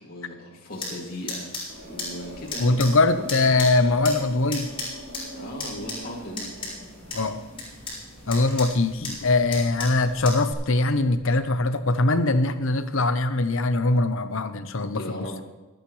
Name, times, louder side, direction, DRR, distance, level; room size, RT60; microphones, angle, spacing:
voice 1, 0.0-1.5 1.8-2.8 3.2-3.3 5.3-6.5 8.2-8.3 14.9-15.4, equal, 45° left, -4 dB, 2.6 m, -37 dB
sound 1, 0.7-10.5, left 2 dB, 25° left, 5.4 m, -37 dB
sound 2, 1.7-10.2 11.0-11.6, right 1 dB, 60° right, 5.5 m, -44 dB
voice 2, 2.6-4.7 7.1-7.4 8.3-15.4, left 2 dB, 65° left, 11 dB, 0.9 m, -22 dB
25.0 x 8.9 x 3.2 m, 1.1 s
head